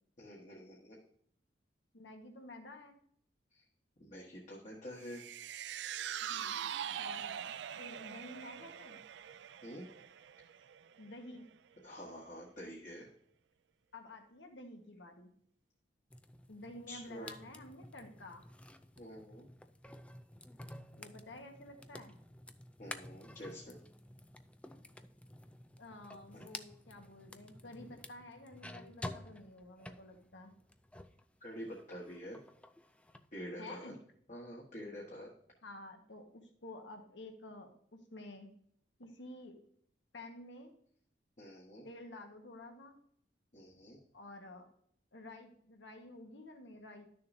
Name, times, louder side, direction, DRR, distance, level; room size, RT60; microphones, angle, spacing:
voice 1, 0.2-1.0 3.5-3.6 4.0-5.2 9.6-9.8 11.8-13.1 16.9-17.3 19.0-19.5 22.8-23.8 26.3-26.5 31.4-32.4 33.3-33.9 34.3-35.3 41.4-41.9 43.5-44.0, equal, 45° left, -3 dB, 1.5 m, -47 dB
voice 2, 1.9-3.0 6.2-7.4 7.8-9.0 11.0-11.5 13.9-15.3 16.5-18.4 21.0-22.1 25.8-30.5 33.6-33.9 35.6-38.5 39.0-39.6 40.1-40.7 41.8-43.0 44.1-44.7 45.1-47.0, left 2 dB, 80° left, 4 dB, 1.5 m, -51 dB
sound 1, 5.0-11.5 11.8-11.9, right 9 dB, 70° right, 0.4 m, -43 dB
sound 2, 16.1-31.2 31.6-33.3, left 1 dB, 5° left, 0.4 m, -51 dB
12.0 x 6.6 x 2.7 m, 0.65 s
head